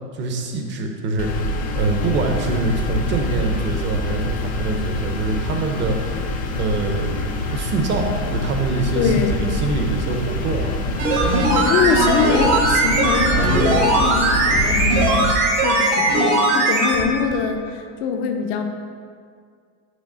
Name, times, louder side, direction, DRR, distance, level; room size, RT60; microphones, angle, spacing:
voice 1, 0.1-1.3 1.7-6.2 6.5-10.8, right 2 dB, 30° right, 3 dB, 0.7 m, -24 dB
sound 1, 1.2-15.3, left 1 dB, 20° left, 0.4 m, -26 dB
voice 2, 8.9-9.4 11.5-18.6, left 6 dB, 50° left, 5 dB, 0.7 m, -23 dB
sound 2, 10.9-17.0 17.3-17.4, right 2 dB, 70° right, 1.6 m, -19 dB
6.3 x 3.3 x 5.5 m, 2.1 s
supercardioid pair, 140°, 41 cm